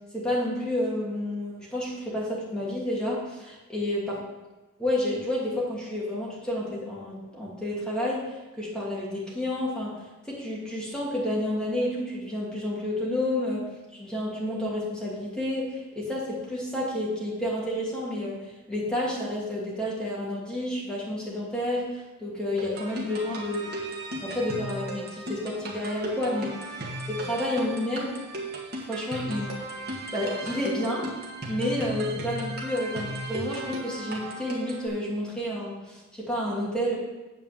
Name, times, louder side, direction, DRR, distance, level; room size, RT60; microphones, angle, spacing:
voice 1, 0.1-4.2 4.8-13.7 13.9-23.7 24.2-26.6 27.1-28.1 28.9-29.6 30.1-31.1 31.5-36.9, left 1 dB, 5° left, -5 dB, 2.5 m, -30 dB
sound 1, 22.6-34.9, right 1 dB, 45° right, 1.8 m, -36 dB
8.9 x 4.6 x 7.4 m, 1.1 s
head